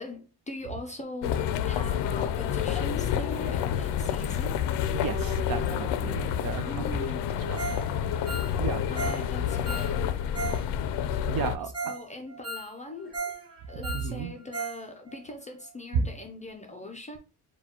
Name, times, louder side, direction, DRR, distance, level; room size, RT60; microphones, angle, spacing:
voice 1, 0.0-4.6 6.6-7.4 8.9-10.0 11.6-13.1 13.7-17.2, left 1 dB, 20° left, 0.4 m, -41 dB
sound 1, 1.2-11.6, left 9 dB, 80° left, 0.5 m, -29 dB
voice 2, 4.9-6.9 7.5-7.7 8.6-9.1 11.3-11.9 13.9-14.3 15.9-16.1, right 6 dB, 55° right, 0.6 m, -32 dB
sound 2, 6.1-8.7 11.3-11.4 13.0-13.7, right 4 dB, 30° right, 1.2 m, -51 dB
Ringtone, 7.6-7.9 8.1-10.6 10.9-11.0 11.4-11.5 11.7-12.0 12.3-13.4 13.7-14.8 15.1-15.2 15.6-15.7, right 3 dB, 10° right, 0.8 m, -36 dB
4.7 x 2.2 x 4.2 m
cardioid pair, 175°, 42 cm